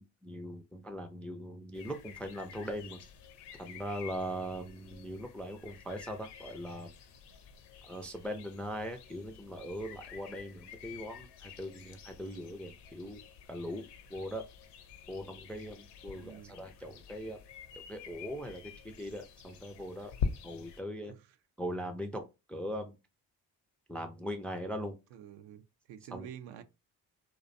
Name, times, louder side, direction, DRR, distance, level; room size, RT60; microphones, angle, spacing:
voice 1, 0.0-3.0 3.6-6.9 7.8-13.2 13.5-14.4 15.1-17.4 17.9-20.1 20.4-21.1 21.6-23.0 23.9-25.0 26.1-26.3, equal, 5° left, 0.3 m, -40 dB
sound 1, 1.7-20.8, left 6 dB, 65° left, 0.6 m, -46 dB
voice 2, 16.1-16.6 21.0-21.3 25.1-26.6, right 9 dB, 70° right, 0.5 m, -49 dB
2.5 x 2.1 x 2.5 m
hypercardioid pair, 55°, 45 cm